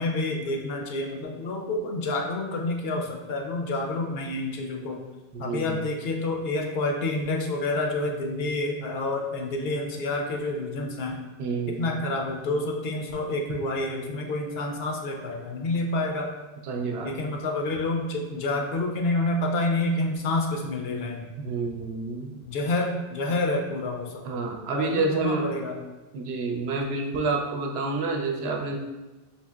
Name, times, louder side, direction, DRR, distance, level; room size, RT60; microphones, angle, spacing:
voice 1, 0.0-5.0 5.4-11.2 11.8-16.3 17.0-21.3 22.4-24.5 24.7-25.8, left 2 dB, 75° left, 2 dB, 0.8 m, -28 dB
voice 2, 5.3-5.8 11.4-12.0 16.7-17.3 21.4-22.4 24.3-25.4 26.1-28.8, right 3 dB, 80° right, 2 dB, 0.8 m, -29 dB
4.3 x 2.8 x 2.3 m, 1.1 s
omnidirectional pair, 1.0 m